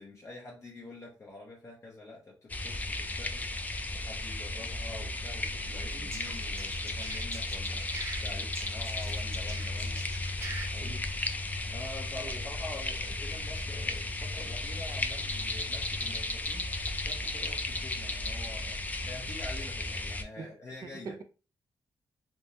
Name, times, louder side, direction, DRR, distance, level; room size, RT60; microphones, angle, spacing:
voice 1, 0.0-11.0 11.7-18.8 19.0-21.1, left 2 dB, 35° left, 0.8 m, -47 dB
sound 1, 2.5-20.2, left 2 dB, 20° left, 0.3 m, -34 dB
sound 2, 5.9-8.2 8.5-10.7, right 3 dB, 30° right, 0.8 m, -43 dB
voice 2, 12.1-12.5 20.4-20.5 20.8-21.2, right 5 dB, 50° right, 0.4 m, -44 dB
3.4 x 2.0 x 2.8 m
cardioid pair, 105°, 8 cm